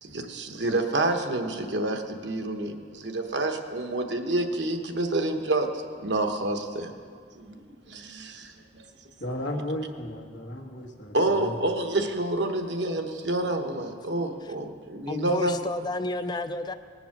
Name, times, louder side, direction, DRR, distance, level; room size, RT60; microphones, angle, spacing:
voice 1, 0.0-5.7 6.0-6.9 7.4-7.6 7.9-8.8 11.1-15.5, right 2 dB, 75° right, 5 dB, 1.1 m, -28 dB
voice 2, 9.2-11.5, left 1 dB, 85° left, 1 dB, 1.6 m, -34 dB
voice 3, 15.1-16.7, left 2 dB, 25° left, 10 dB, 0.4 m, -31 dB
19.5 x 7.1 x 5.9 m, 2.1 s
head